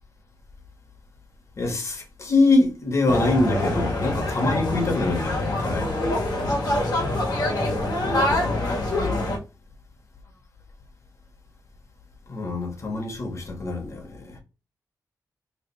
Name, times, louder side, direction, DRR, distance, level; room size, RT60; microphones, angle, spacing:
voice 1, 1.6-6.1 12.3-14.4, left 2 dB, 45° left, 1.3 m, -24 dB
sound 1, 3.1-9.4, left 1 dB, 80° left, 1.4 m, -25 dB
3.3 x 2.4 x 4.2 m
wide cardioid pair, 90°, 7 cm